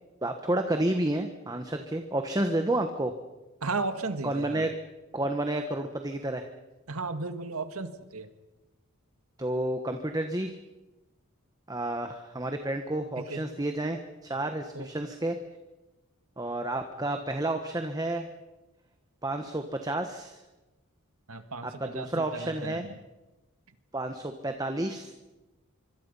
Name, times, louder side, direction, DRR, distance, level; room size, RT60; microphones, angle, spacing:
voice 1, 0.2-3.1 4.2-4.7 5.1-6.5 9.4-10.6 11.7-15.4 16.4-18.3 19.2-20.4 21.6-22.9 23.9-25.1, right 1 dB, 15° right, 6 dB, 1.3 m, -30 dB
voice 2, 3.6-4.7 6.9-8.3 13.2-13.4 14.7-14.9 21.3-22.9, right 3 dB, 80° right, 9 dB, 2.0 m, -35 dB
25.5 x 25.0 x 5.6 m, 1.1 s
head